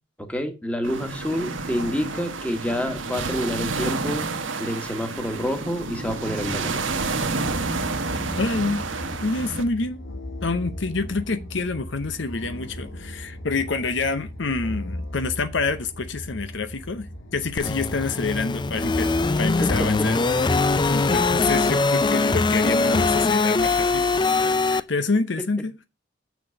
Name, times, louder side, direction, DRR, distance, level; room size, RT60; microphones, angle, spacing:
voice 1, 0.3-4.2 4.6-6.8 19.6-19.9 20.3-20.4, equal, 5° left, 1.6 m, -28 dB
sound 1, 0.8-9.6, right 3 dB, 80° right, 1.2 m, -29 dB
sound 2, 7.4-21.5, left 1 dB, 80° left, 2.0 m, -37 dB
voice 2, 8.4-8.8 9.2-10.0 10.4-20.6 20.9-24.1 24.3-25.7, left 3 dB, 65° left, 0.8 m, -27 dB
sound 3, 17.6-24.8, left 3 dB, 25° left, 0.4 m, -22 dB
7.2 x 6.1 x 6.4 m
head